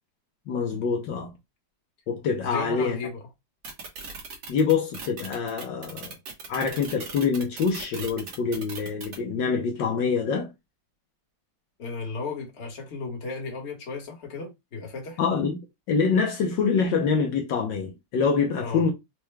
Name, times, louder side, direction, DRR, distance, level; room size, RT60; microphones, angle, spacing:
voice 1, 0.5-1.3 2.1-3.0 4.5-6.2 6.5-10.5 15.2-15.6 15.9-18.9, left 5 dB, 70° left, 1.4 m, -25 dB
voice 2, 2.4-3.2 11.8-15.2 18.6-18.8, left 4 dB, 40° left, 1.3 m, -35 dB
sound 1, 3.6-9.2, right 4 dB, 60° right, 1.5 m, -38 dB
4.5 x 2.2 x 3.1 m
omnidirectional pair, 2.1 m